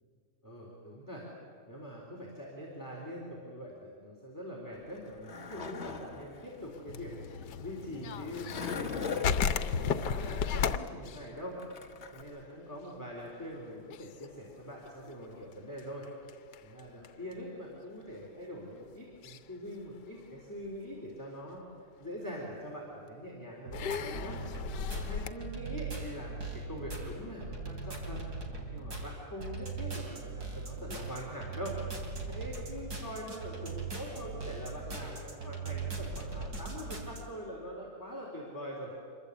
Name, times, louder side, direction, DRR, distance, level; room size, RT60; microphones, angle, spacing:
voice 1, 0.4-1.3 1.7-7.1 7.6-16.1 16.6-21.6 22.0-38.9, equal, 10° left, -4 dB, 3.9 m, -43 dB
Skateboard, 4.8-12.2, left 5 dB, 45° left, 1.6 m, -42 dB
sound 1, 6.7-8.9 9.2-12.5 12.7-12.9 13.3-13.6 13.9-17.3 18.1-18.2 19.2-19.5 20.0-20.7 21.2-21.3 22.6-22.7 23.7-25.3, left 7 dB, 80° left, 1.5 m, -35 dB
sound 2, 23.7-37.2, right 4 dB, 70° right, 3.9 m, -40 dB
26.5 x 23.0 x 8.3 m, 2.2 s
omnidirectional pair, 1.8 m